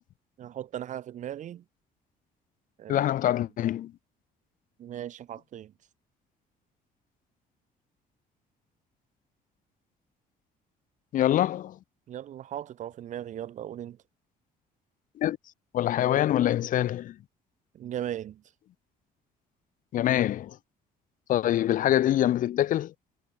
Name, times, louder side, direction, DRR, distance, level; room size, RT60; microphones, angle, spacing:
voice 1, 0.4-1.6 2.8-3.1 4.8-5.7 12.1-14.0 17.7-18.4, right 11 dB, 45° right, 0.5 m, -37 dB
voice 2, 2.9-3.9 11.1-11.8 15.2-15.4 15.7-17.2 19.9-20.6 21.3-22.9, left 12 dB, 50° left, 0.5 m, -25 dB
cardioid pair, 115°, 17 cm